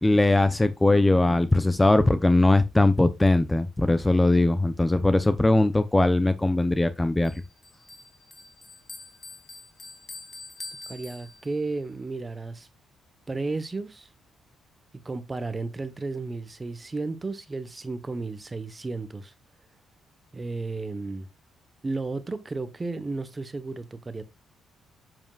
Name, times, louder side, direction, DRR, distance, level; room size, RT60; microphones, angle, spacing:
voice 1, 0.0-7.4, left 2 dB, 10° left, 0.7 m, -20 dB
Bell, 7.2-11.8, left 3 dB, 30° left, 1.9 m, -45 dB
voice 2, 10.9-12.7 13.3-14.1 15.0-19.3 20.3-21.3 21.8-24.2, right 3 dB, 25° right, 1.1 m, -33 dB
7.7 x 7.2 x 2.4 m
cardioid pair, 90°, 0 cm